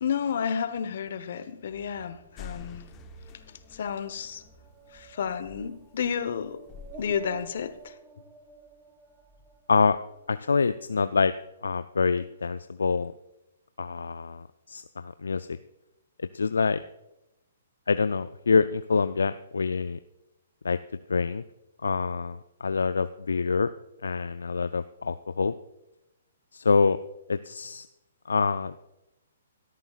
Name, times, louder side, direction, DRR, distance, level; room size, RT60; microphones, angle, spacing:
voice 1, 0.0-2.9 3.7-4.4 4.9-6.6 7.0-7.9 12.2-12.3, left 7 dB, 60° left, 11 dB, 1.1 m, -31 dB
sound 1, 1.6-11.5 11.8-12.5, right 4 dB, 10° right, 1.6 m, -52 dB
sound 2, 2.4-7.9, left 6 dB, 25° left, 0.9 m, -48 dB
voice 2, 10.3-11.3 11.6-13.1 13.8-15.6 16.2-16.8 17.9-20.0 20.6-20.8 21.1-21.4 21.8-23.7 24.0-25.5 26.5-27.0 27.3-27.9 28.3-28.8, left 4 dB, 80° left, 12 dB, 0.3 m, -26 dB
17.5 x 13.0 x 2.4 m, 0.92 s
hypercardioid pair, 130°, 0 cm